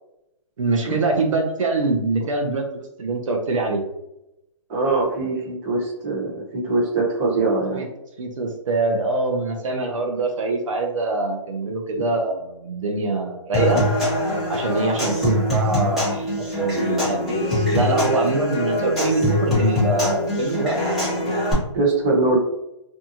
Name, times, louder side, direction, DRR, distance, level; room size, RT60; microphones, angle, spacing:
voice 1, 0.6-3.8 7.7-7.9 8.2-13.8 14.5-20.8, right 3 dB, 80° right, 2 dB, 0.6 m, -24 dB
voice 2, 4.7-7.8 21.7-22.4, right 3 dB, 25° right, -5 dB, 1.0 m, -22 dB
Human voice / Acoustic guitar / Percussion, 13.5-21.5, left 1 dB, ahead, 0.9 m, -23 dB
2.6 x 2.3 x 2.8 m, 0.87 s
hypercardioid pair, 160°, 16 cm